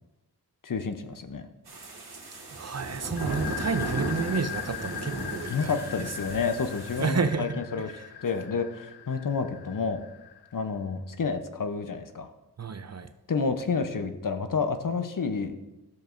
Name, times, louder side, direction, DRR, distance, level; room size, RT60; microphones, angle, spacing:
voice 1, 0.6-1.4 3.4-3.5 5.5-7.9 8.2-10.0 10.5-12.3 13.3-15.6, left 5 dB, 55° left, 8 dB, 0.8 m, -30 dB
sound 1, 1.7-7.1, right 2 dB, 70° right, 2.0 m, -36 dB
voice 2, 2.5-6.1 7.0-7.9 12.6-13.1, right 5 dB, 40° right, 10 dB, 0.5 m, -30 dB
sound 2, 3.2-10.6, left 10 dB, 80° left, 0.5 m, -40 dB
12.5 x 7.0 x 2.6 m, 1.0 s
wide cardioid pair, 65°, 40 cm